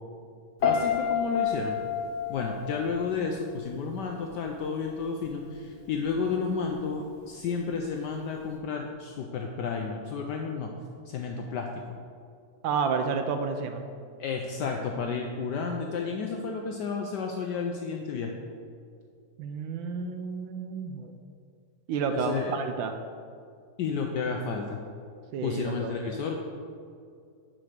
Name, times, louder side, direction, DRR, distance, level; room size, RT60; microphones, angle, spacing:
voice 1, 0.6-1.8 2.3-10.7 11.1-11.9 14.2-18.4 22.1-22.5 23.8-24.8 25.4-26.4, left 5 dB, 85° left, 2 dB, 0.9 m, -32 dB
Piano, 0.6-3.7 4.0-4.4, left 7 dB, 55° left, 1.4 m, -29 dB
voice 2, 12.6-13.8 19.4-21.1 21.9-22.9 25.3-26.2, right 5 dB, 75° right, 7 dB, 1.2 m, -30 dB
5.9 x 5.1 x 6.4 m, 2.3 s
omnidirectional pair, 2.4 m